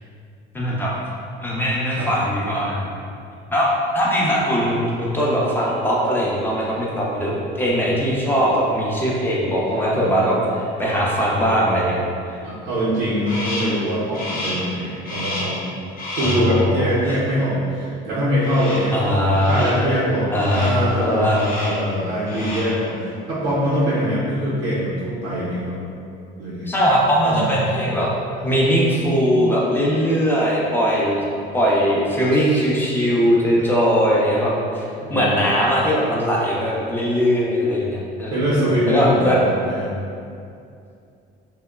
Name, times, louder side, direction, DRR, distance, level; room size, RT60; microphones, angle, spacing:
voice 1, 0.5-0.9 1.4-2.9 3.5-12.0 12.3-12.4 16.2-16.9 18.9-19.8 20.3-21.5 26.7-28.1 28.4-31.2 31.5-34.9 35.1-38.4 38.9-39.4, equal, 10° left, -5 dB, 0.4 m, -20 dB
voice 2, 12.4-15.6 16.2-19.2 19.5-25.8 26.4-26.7 27.2-27.5 32.4-32.6 35.0-35.5 38.3-39.9, equal, 80° right, -10 dB, 0.6 m, -23 dB
Crow, 13.3-13.8 14.1-14.7 15.0-15.6 16.0-16.5 18.4-19.0 19.3-19.9 20.3-20.9 21.3-21.9 22.2-22.8, left 1 dB, 45° left, 0.7 m, -30 dB
2.8 x 2.0 x 2.2 m, 2.5 s
supercardioid pair, 105°, 21 cm